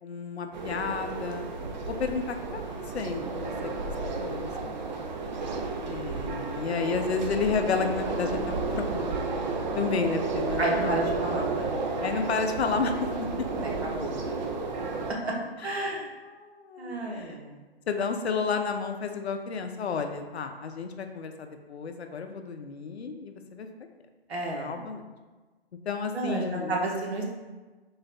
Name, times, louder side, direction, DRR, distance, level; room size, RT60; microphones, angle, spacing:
voice 1, 0.0-1.5 1.9-3.7 4.2-4.9 5.9-8.4 8.7-9.2 9.8-11.0 12.0-13.1 13.8-13.9 15.6-16.0 16.2-17.4 17.9-23.7 24.5-25.1 25.9-26.8, left 5 dB, 85° left, 6 dB, 0.5 m, -31 dB
sound 1, 0.5-15.1, right 3 dB, 45° right, 0.5 m, -32 dB
voice 2, 10.6-11.7 13.6-14.1 14.4-14.5 15.1-15.3 15.6-16.1 16.8-17.5 24.3-24.7 26.1-27.2, right 2 dB, 75° right, -1 dB, 1.1 m, -31 dB
3.9 x 2.1 x 4.0 m, 1.3 s
hypercardioid pair, 140°, 32 cm